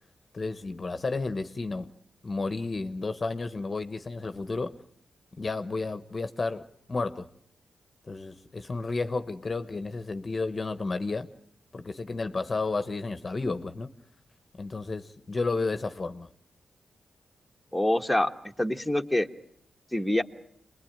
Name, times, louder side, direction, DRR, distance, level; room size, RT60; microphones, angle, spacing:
voice 1, 0.3-1.9 2.2-4.8 5.4-7.3 8.1-11.3 11.7-13.9 14.6-16.3, left 3 dB, 30° left, 1.0 m, -32 dB
voice 2, 17.7-18.3 18.6-19.3 19.9-20.2, left 1 dB, 5° left, 1.3 m, -25 dB
28.5 x 21.0 x 8.9 m
cardioid pair, 100°, 0 cm